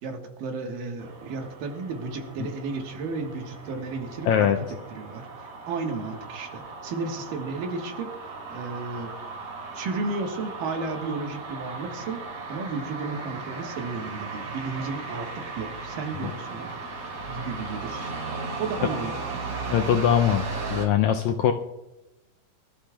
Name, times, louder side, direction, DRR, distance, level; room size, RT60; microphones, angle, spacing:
voice 1, 0.0-9.1 9.7-16.7 17.0-18.1 18.6-19.1, right 4 dB, 80° right, 3 dB, 3.1 m, -33 dB
sound 1, 1.0-20.9, right 3 dB, 65° right, 5.0 m, -37 dB
voice 2, 4.3-4.6 19.7-20.4 20.7-21.5, left 9 dB, 85° left, 5 dB, 1.6 m, -21 dB
24.0 x 13.0 x 2.4 m, 1.0 s
omnidirectional pair, 3.9 m